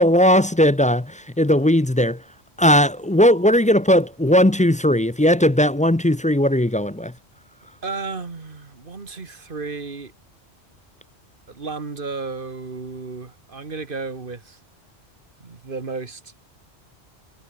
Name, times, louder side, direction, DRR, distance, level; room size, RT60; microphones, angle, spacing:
voice 1, 0.0-2.2 2.6-7.1, equal, 10° left, 0.4 m, -17 dB
voice 2, 7.8-10.1 11.5-14.6 15.4-16.3, right 4 dB, 50° right, 1.9 m, -33 dB
omnidirectional pair, 1.1 m